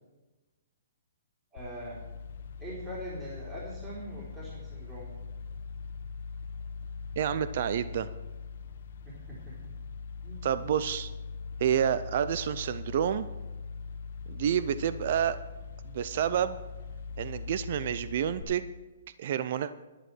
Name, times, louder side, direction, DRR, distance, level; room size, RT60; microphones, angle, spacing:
voice 1, 1.5-2.0 2.6-5.1 9.1-9.5 10.2-10.5, equal, 15° right, -7 dB, 3.9 m, -42 dB
sound 1, 1.6-18.4, left 5 dB, 65° left, 1.3 m, -41 dB
voice 2, 7.2-8.1 10.4-11.1 11.6-13.3 14.3-15.4 15.8-16.6 17.2-18.7 19.2-19.7, right 9 dB, 50° right, 14 dB, 0.5 m, -29 dB
11.0 x 10.0 x 6.2 m, 1.2 s
hypercardioid pair, 155°, 0 cm